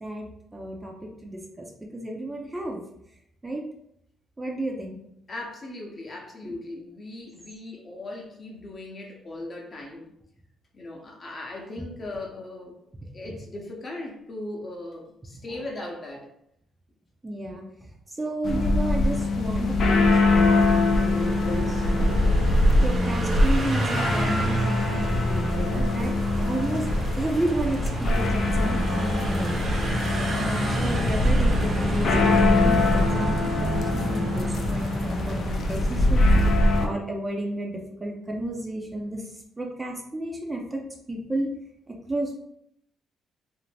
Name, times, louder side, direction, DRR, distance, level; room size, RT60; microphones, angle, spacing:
voice 1, 0.5-1.7 1.9-2.8 3.4-3.6 4.4-5.0 6.4-6.6 17.2-17.6 18.1-22.1 22.8-26.9 27.2-29.6 30.3-36.4 36.8-39.2 39.6-40.8 41.1-41.5 41.9-42.4, right 1 dB, 20° right, 0 dB, 0.5 m, -32 dB
voice 2, 5.3-10.1 10.7-12.7 13.1-16.3, left 2 dB, 35° left, 0 dB, 0.7 m, -38 dB
sound 1, 18.4-36.9, left 2 dB, 60° left, 0.3 m, -23 dB
sound 2, 19.6-36.2, equal, 50° right, 0.8 m, -29 dB
2.6 x 2.0 x 3.2 m, 0.74 s
cardioid pair, 90°, 0 cm